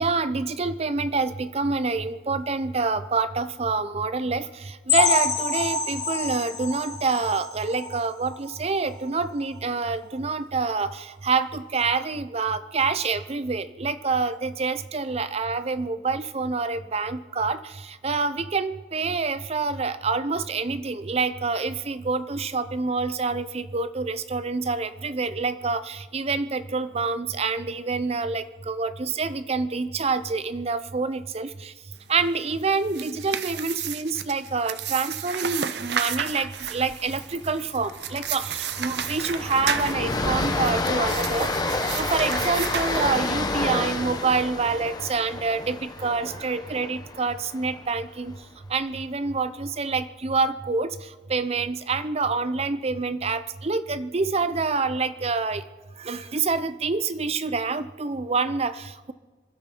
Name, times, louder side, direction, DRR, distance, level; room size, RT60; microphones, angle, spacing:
voice 1, 0.0-4.5 4.9-17.6 18.0-31.7 32.1-41.5 42.0-48.3 48.7-50.9 51.3-55.6 56.0-59.1, right 4 dB, 35° right, 13 dB, 0.6 m, -27 dB
sound 1, 4.9-8.5 8.9-9.1 9.4-9.5 10.0-10.1, left 4 dB, 45° left, 4.6 m, -27 dB
sound 2, 32.7-43.6, right 8 dB, 65° right, 0.7 m, -32 dB
Train, 36.6-36.9 37.2-37.4 37.7-47.9, left 2 dB, 25° left, 1.2 m, -29 dB
26.5 x 12.0 x 4.5 m, 1.4 s
head